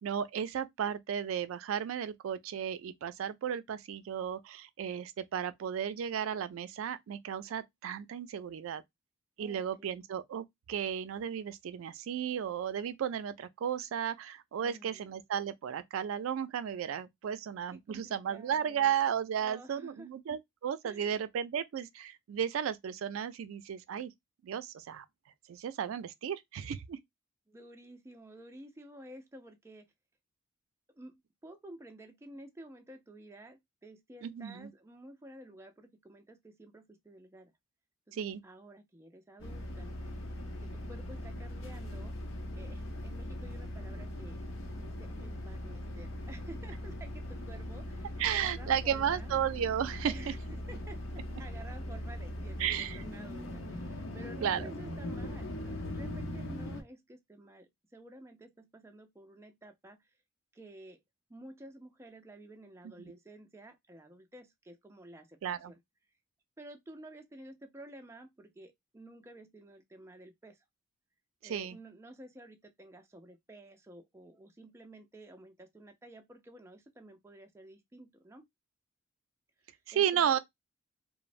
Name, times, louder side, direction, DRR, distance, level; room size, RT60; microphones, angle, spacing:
voice 1, 0.0-8.8 9.4-24.1 24.4-25.1 25.5-27.0 34.2-34.7 38.1-38.4 48.2-50.3 52.6-53.0 54.4-54.7 65.4-65.7 71.4-71.8 79.9-80.4, right 8 dB, 85° right, 0.3 m, -34 dB
voice 2, 9.4-10.0 14.6-15.2 17.7-18.9 19.4-20.1 20.8-21.2 27.5-29.9 30.9-37.5 38.1-39.9 40.6-42.1 42.6-44.4 44.8-49.3 50.0-50.4 50.7-60.1 60.5-61.0 61.3-65.8 66.6-70.6 71.4-78.5 79.6-80.4, right 1 dB, 15° right, 0.4 m, -52 dB
sound 1, 39.4-56.8, left 1 dB, 75° left, 0.7 m, -40 dB
3.0 x 2.0 x 2.4 m
head